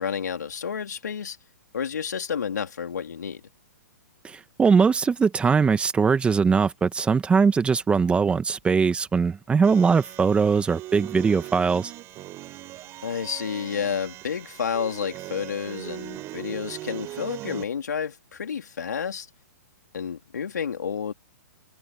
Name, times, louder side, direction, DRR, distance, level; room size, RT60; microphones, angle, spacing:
voice 1, 0.0-1.4 1.7-3.4 13.0-19.3 19.9-21.1, left 7 dB, 80° left, 3.7 m, -30 dB
voice 2, 4.2-11.9, right 5 dB, 10° right, 1.6 m, -21 dB
sound 1, 9.6-17.6, right 16 dB, 30° right, 5.6 m, -40 dB
hypercardioid pair, 130°, 9 cm